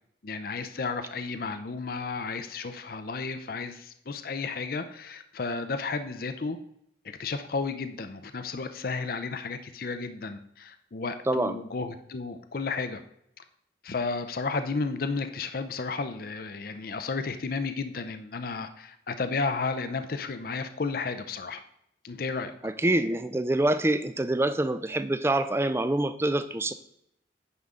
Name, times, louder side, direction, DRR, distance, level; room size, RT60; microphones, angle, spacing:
voice 1, 0.2-6.6 7.0-13.0 13.4-13.5 13.8-21.6 22.0-22.7, left 4 dB, 55° left, 9 dB, 0.5 m, -33 dB
voice 2, 11.3-11.6 22.6-26.7, right 1 dB, 15° right, 12 dB, 0.4 m, -26 dB
9.5 x 5.5 x 3.7 m, 0.75 s
head